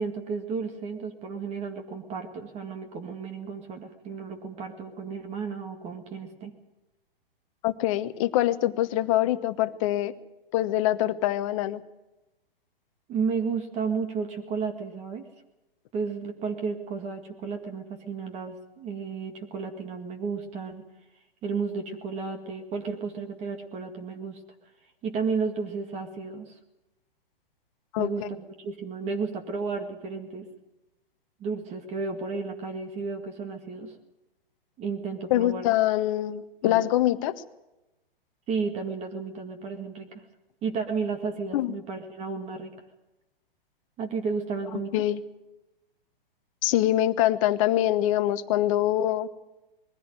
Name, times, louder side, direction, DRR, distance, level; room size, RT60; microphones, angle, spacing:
voice 1, 0.0-6.5 13.1-15.2 15.9-20.8 21.4-24.4 25.0-26.5 28.0-30.5 31.4-33.9 34.8-35.7 36.6-36.9 38.5-40.1 40.6-42.7 44.0-45.0, right 5 dB, 25° right, 5 dB, 1.9 m, -33 dB
voice 2, 7.6-10.1 10.5-11.8 27.9-28.1 35.3-37.4 41.5-41.8 44.9-45.2 46.6-49.3, left 13 dB, 35° left, 11 dB, 1.1 m, -24 dB
21.0 x 15.5 x 9.2 m, 1.0 s
figure-of-eight pair, 115°, 29 cm